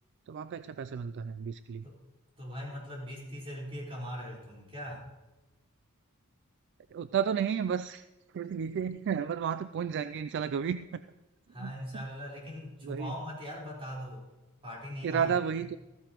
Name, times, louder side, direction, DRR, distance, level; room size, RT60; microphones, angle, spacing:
voice 1, 0.3-1.8 6.9-8.0 8.3-11.0 11.6-11.7 12.8-13.1 15.0-15.8, right 7 dB, 55° right, 13 dB, 0.3 m, -32 dB
voice 2, 2.4-5.1 11.5-14.2 14.6-15.3, equal, 25° right, -4 dB, 4.3 m, -40 dB
14.5 x 14.5 x 3.0 m, 1.1 s
head